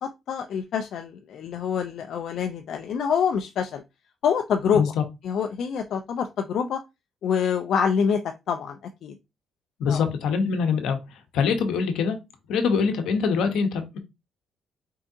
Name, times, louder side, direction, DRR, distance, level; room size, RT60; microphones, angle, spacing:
voice 1, 0.0-3.8 4.2-4.8 5.2-6.8 7.2-8.2 8.5-9.1 9.9-10.0, left 7 dB, 70° left, 6 dB, 0.5 m, -26 dB
voice 2, 4.7-5.0 9.8-11.0 11.3-12.2 12.5-14.0, left 5 dB, 85° left, 7 dB, 0.9 m, -24 dB
4.6 x 3.5 x 2.7 m, 0.24 s
cardioid pair, 90°, 0 cm